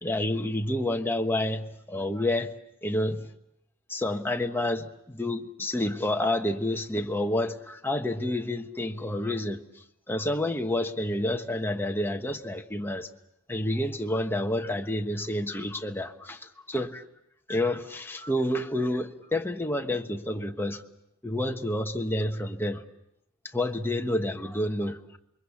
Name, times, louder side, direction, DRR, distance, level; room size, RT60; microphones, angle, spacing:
voice 1, 0.0-2.5 2.8-3.3 3.9-9.6 10.1-13.1 13.5-17.1 17.5-20.8 21.2-22.8 23.5-25.2, left 1 dB, 10° left, 4 dB, 1.3 m, -29 dB
27.5 x 23.5 x 7.2 m, 0.81 s
head